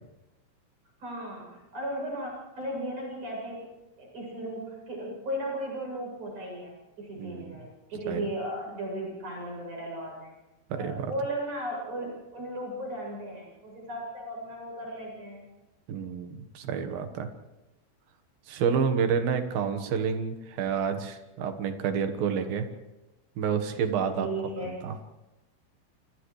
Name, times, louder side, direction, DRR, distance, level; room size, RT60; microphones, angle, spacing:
voice 1, 1.0-10.3 10.7-15.5 24.2-24.8, right 1 dB, 40° right, -1 dB, 9.4 m, -36 dB
voice 2, 10.7-11.1 15.9-17.3 18.5-22.7 23.4-24.3 24.7-24.9, right 6 dB, 65° right, 7 dB, 2.8 m, -29 dB
29.5 x 28.5 x 3.3 m, 1.0 s
omnidirectional pair, 5.4 m